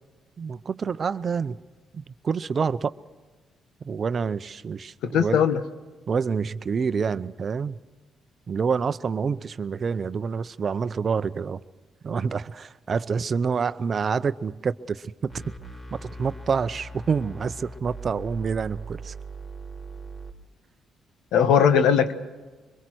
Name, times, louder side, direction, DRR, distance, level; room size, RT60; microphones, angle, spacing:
voice 1, 0.4-1.6 1.9-2.9 3.8-5.4 6.1-7.8 8.5-11.6 12.0-15.3 15.9-19.1, right 5 dB, 45° right, 0.7 m, -27 dB
voice 2, 5.0-5.6 21.3-22.1, left 7 dB, 85° left, 1.4 m, -19 dB
sound 1, 15.3-20.3, right 2 dB, 25° left, 3.9 m, -40 dB
24.0 x 21.5 x 6.2 m
cardioid pair, 90°, 0 cm